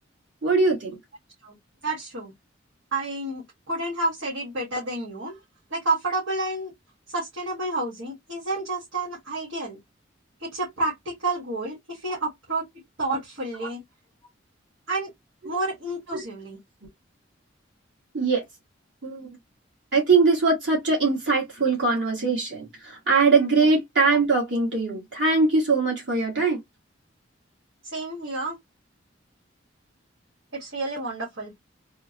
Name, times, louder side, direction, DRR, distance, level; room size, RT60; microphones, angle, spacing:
voice 1, 0.4-1.0 15.4-15.5 16.1-16.2 18.1-18.4 19.0-19.3 19.9-26.6, right 4 dB, 65° right, 1.5 m, -22 dB
voice 2, 1.8-2.3 2.9-5.4 5.7-6.7 7.1-9.8 10.4-12.6 13.0-13.8 14.9-15.1 15.4-16.6 23.6-23.7 27.8-28.6 30.5-31.5, right 2 dB, 85° right, 1.6 m, -30 dB
3.6 x 2.1 x 2.9 m
head